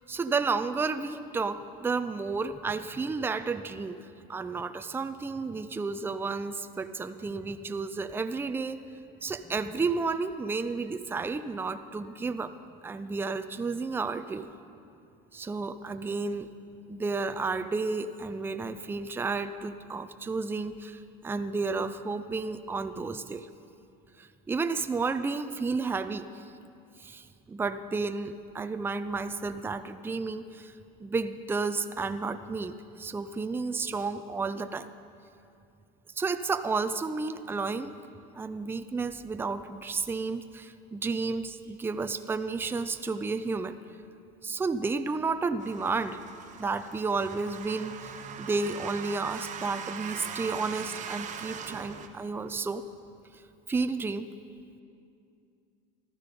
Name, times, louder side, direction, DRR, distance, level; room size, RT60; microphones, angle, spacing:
voice 1, 0.1-4.0 4.3-8.8 9.2-12.5 12.8-14.5 15.3-16.5 16.9-23.5 24.2-26.3 27.0-30.7 31.0-34.9 36.2-37.9 38.3-43.8 44.4-46.2 46.6-52.8 53.7-54.3, right 4 dB, 10° right, 10 dB, 0.5 m, -32 dB
sound 1, 45.6-52.1, right 7 dB, 40° right, 1.1 m, -41 dB
14.5 x 12.5 x 5.3 m, 2.5 s
supercardioid pair, 110°, 20 cm